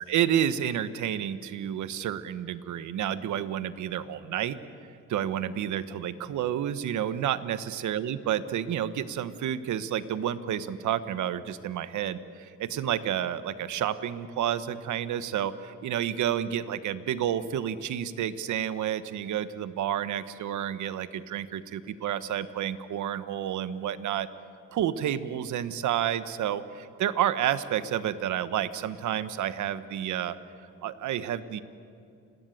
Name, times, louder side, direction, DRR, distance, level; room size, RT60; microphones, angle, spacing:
voice 1, 0.1-4.6 5.1-24.3 24.7-30.4 30.8-31.6, right 10 dB, 75° right, 13 dB, 1.2 m, -30 dB
30.0 x 18.0 x 9.3 m, 2.5 s
cardioid pair, 90°, 30 cm